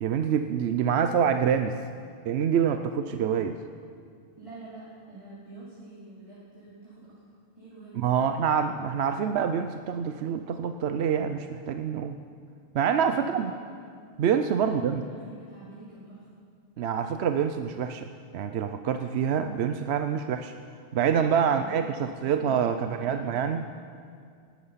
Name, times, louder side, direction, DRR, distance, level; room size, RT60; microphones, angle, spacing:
voice 1, 0.0-1.8 2.3-3.6 7.9-12.2 12.7-13.5 14.2-15.0 16.8-18.1 18.3-20.5 20.9-23.7, right 7 dB, 75° right, 8 dB, 0.9 m, -26 dB
voice 2, 4.4-7.1 7.5-8.6 13.1-13.7 14.6-16.3 21.5-22.5 22.7-23.8, right 3 dB, 30° right, -9 dB, 3.2 m, -47 dB
19.0 x 12.0 x 5.6 m, 2.2 s
omnidirectional pair, 1.1 m